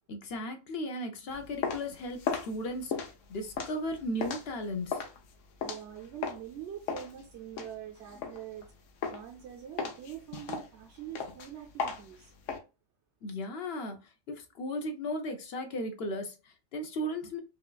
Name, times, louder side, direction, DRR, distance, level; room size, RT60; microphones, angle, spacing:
voice 1, 0.1-5.0 13.2-14.0 14.3-17.4, equal, 60° left, 0.8 m, -36 dB
sound 1, 1.3-6.5 6.9-8.7 9.0-9.4 9.8-12.6, left 6 dB, 85° left, 1.0 m, -36 dB
voice 2, 5.6-8.7 9.0-12.3, right 10 dB, 70° right, 0.8 m, -44 dB
4.8 x 2.3 x 2.2 m
omnidirectional pair, 1.3 m